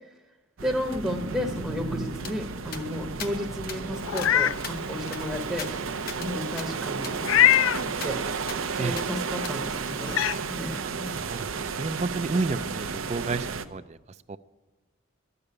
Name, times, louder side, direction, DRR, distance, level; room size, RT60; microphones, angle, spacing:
voice 1, 0.6-5.7 6.2-7.2 7.6-8.4 8.7-10.2 10.5-11.2 12.5-12.6, left 1 dB, ahead, 0 dB, 0.8 m, -33 dB
sound 1, 0.6-13.7, right 5 dB, 85° right, 0.7 m, -33 dB
sound 2, 2.2-2.3 2.7-2.8 3.2-3.3 3.7-3.8 4.2-4.3 4.6-6.3 6.6-6.7 7.0-7.2 7.5-7.6 8.0-8.1 8.5-8.6 9.0-9.1 9.4-9.5, left 6 dB, 45° left, 0.9 m, -39 dB
Meow, 4.0-4.6 5.1-5.2 7.2-7.8 9.4-9.5 10.1-10.4, left 11 dB, 75° left, 0.3 m, -21 dB
voice 2, 10.8-14.0 14.3-14.4, right 3 dB, 35° right, 13 dB, 0.3 m, -31 dB
13.0 x 6.8 x 9.6 m, 1.2 s
head